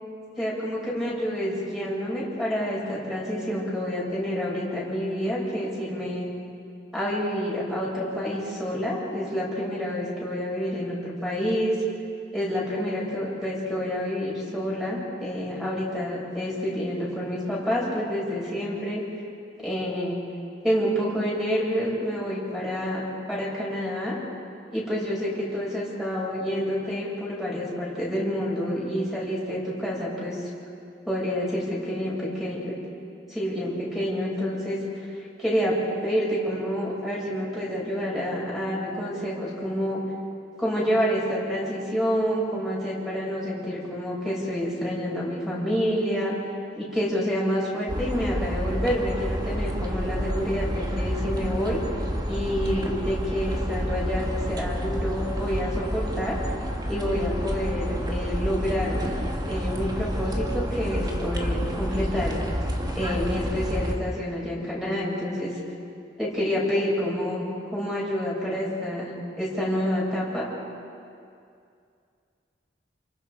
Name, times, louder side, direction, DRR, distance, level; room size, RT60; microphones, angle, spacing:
voice 1, 0.4-6.3 6.9-11.8 12.3-19.0 19.6-20.2 20.6-23.0 23.3-24.2 24.7-30.4 31.1-32.8 33.3-34.8 35.4-35.8 36.0-40.0 40.6-46.4 46.7-51.8 52.3-56.4 56.9-59.1 59.5-62.4 62.9-65.5 66.2-70.5, equal, ahead, -6 dB, 7.4 m, -28 dB
sound 1, 47.9-63.9, equal, 25° right, 2.2 m, -29 dB
29.5 x 28.0 x 5.1 m, 2.4 s
head